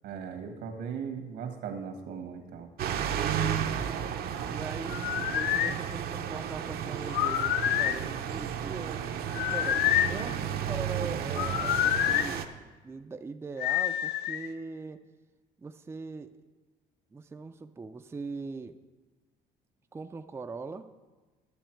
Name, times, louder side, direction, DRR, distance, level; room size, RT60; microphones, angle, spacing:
voice 1, 0.0-2.7, right 6 dB, 80° right, 6 dB, 1.4 m, -38 dB
sound 1, 2.8-12.5, right 9 dB, 65° right, 0.7 m, -33 dB
voice 2, 4.5-12.5 12.8-15.0 15.6-16.3 17.1-18.8 19.9-20.9, right 4 dB, 15° right, 7 dB, 0.4 m, -41 dB
sound 2, 4.9-5.8 7.1-8.0 9.3-10.2 11.3-12.3 13.6-14.5, left 12 dB, 75° left, 0.4 m, -27 dB
11.5 x 7.1 x 4.5 m, 1.3 s
cardioid pair, 110°, 17 cm